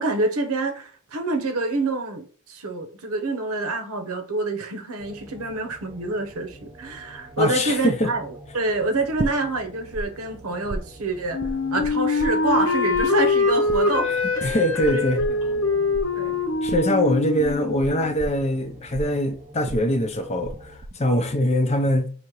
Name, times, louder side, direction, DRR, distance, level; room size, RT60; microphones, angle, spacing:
voice 1, 0.0-11.4 11.7-14.1 14.4-14.6 14.9-15.0 15.3-16.4, right 2 dB, 75° right, 1.0 m, -27 dB
sound 1, 5.0-20.8, right 1 dB, 5° right, 1.0 m, -46 dB
voice 2, 7.4-8.1 14.0-15.2 16.6-22.1, equal, 30° left, 0.6 m, -23 dB
sound 2, 9.2-10.0 10.3-12.7 12.9-20.6 20.8-21.3, right 1 dB, 30° right, 0.4 m, -33 dB
Wind instrument woodwind instrument, 11.3-18.1, left 3 dB, 70° left, 0.9 m, -24 dB
4.9 x 2.8 x 3.0 m
head